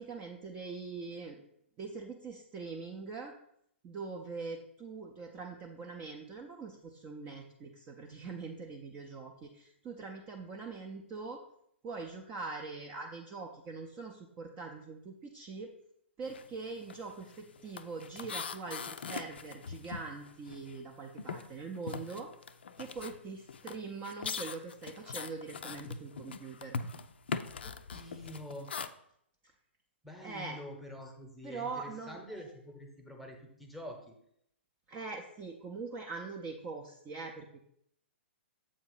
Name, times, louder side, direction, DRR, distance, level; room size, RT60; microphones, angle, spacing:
voice 1, 0.0-1.4 1.8-3.3 3.8-11.4 11.8-15.7 16.2-22.3 22.8-26.8 30.2-30.6 31.4-32.2 34.9-37.6, right 4 dB, 20° right, 2 dB, 0.5 m, -43 dB
sound 1, 16.2-16.5 16.8-20.9 21.2-28.9, left 5 dB, 60° left, 0.4 m, -41 dB
voice 2, 27.6-28.7 30.0-34.1, left 1 dB, ahead, 2 dB, 0.9 m, -46 dB
7.4 x 2.8 x 5.6 m, 0.72 s
figure-of-eight pair, 115°, 6 cm